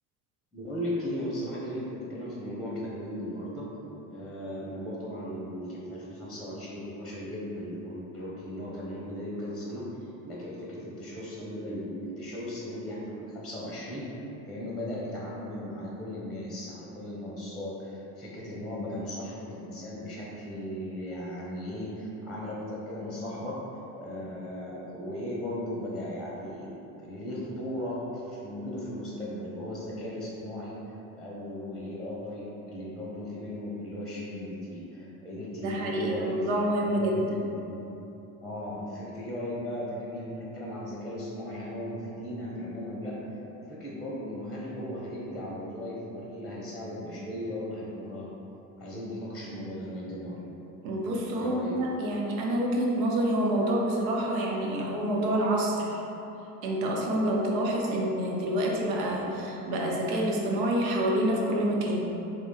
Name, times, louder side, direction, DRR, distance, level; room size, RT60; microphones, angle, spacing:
voice 1, 0.5-3.7 4.1-9.8 10.2-14.0 14.5-23.6 24.0-26.7 27.0-28.0 28.3-30.7 31.1-37.2 37.4-37.8 38.4-43.1 43.6-48.3 48.8-50.4 51.4-51.7, left 1 dB, ahead, -6 dB, 0.9 m, -37 dB
voice 2, 35.5-37.4 50.8-56.0 56.6-62.1, right 1 dB, 70° right, -1 dB, 0.8 m, -27 dB
3.5 x 3.0 x 4.0 m, 3.0 s
hypercardioid pair, 65°, 45 cm